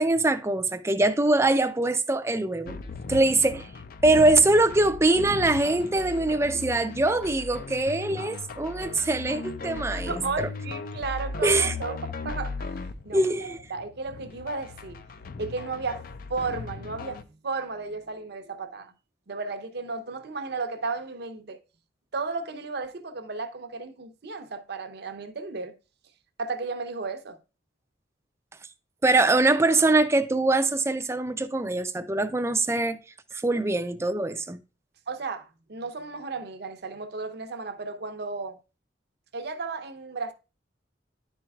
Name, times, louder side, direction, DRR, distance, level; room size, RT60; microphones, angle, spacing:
voice 1, 0.0-2.8 3.1-3.7 4.0-10.2 11.4-11.7 13.1-13.6 29.0-33.0 33.3-34.6, right 2 dB, 15° right, 0.4 m, -23 dB
sound 1, 2.7-17.2, left 4 dB, 50° left, 0.4 m, -37 dB
voice 2, 9.9-15.0 15.4-18.9 19.3-21.6 22.1-25.8 26.4-27.4 33.6-33.7 35.1-38.6 39.3-40.3, right 4 dB, 60° right, 0.7 m, -34 dB
10.5 x 4.5 x 2.3 m
head